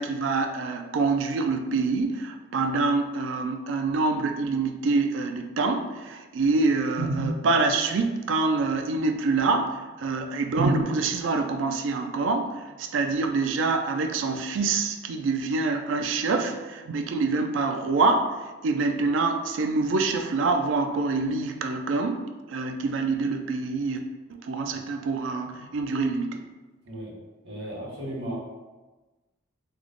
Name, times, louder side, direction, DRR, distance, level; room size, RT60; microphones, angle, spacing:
voice 1, 0.0-24.0 24.3-26.4, right 3 dB, 80° right, 5 dB, 0.4 m, -26 dB
voice 2, 27.4-28.3, right 1 dB, 65° right, -5 dB, 1.1 m, -35 dB
3.1 x 2.1 x 3.8 m, 1.2 s
head